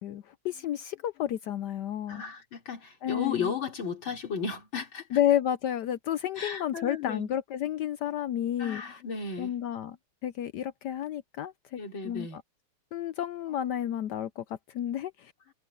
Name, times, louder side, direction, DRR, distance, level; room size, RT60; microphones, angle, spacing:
voice 1, 0.0-2.2 3.0-3.5 5.1-8.8 9.4-10.0 10.2-11.8 12.0-12.4 12.9-15.5, left 11 dB, 80° left, 0.9 m, -31 dB
voice 2, 2.1-5.2 6.4-7.3 8.6-9.6 11.8-12.4, left 6 dB, 60° left, 4.6 m, -35 dB
omnidirectional pair, 2.4 m